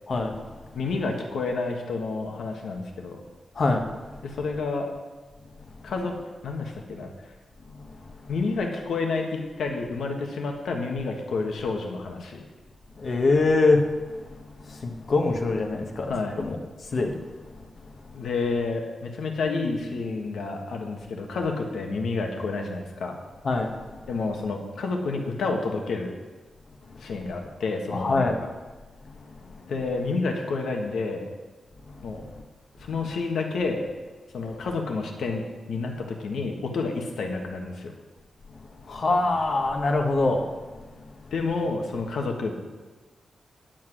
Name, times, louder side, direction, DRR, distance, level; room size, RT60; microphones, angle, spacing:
voice 1, 0.1-0.4 3.6-3.9 13.0-13.8 14.2-14.3 14.6-16.6 16.9-17.2 23.4-23.8 27.9-28.4 38.9-40.5, left 3 dB, 50° left, 3 dB, 1.2 m, -23 dB
voice 2, 0.7-3.2 4.2-4.9 5.8-6.1 6.4-7.1 8.3-12.4 16.1-16.4 18.1-23.2 24.1-26.1 27.0-28.5 29.7-31.3 32.0-32.2 32.8-33.9 34.3-35.4 35.7-37.9 41.3-42.5, left 3 dB, 90° left, 2 dB, 1.6 m, -29 dB
10.5 x 7.6 x 6.2 m, 1.3 s
wide cardioid pair, 150°, 0 cm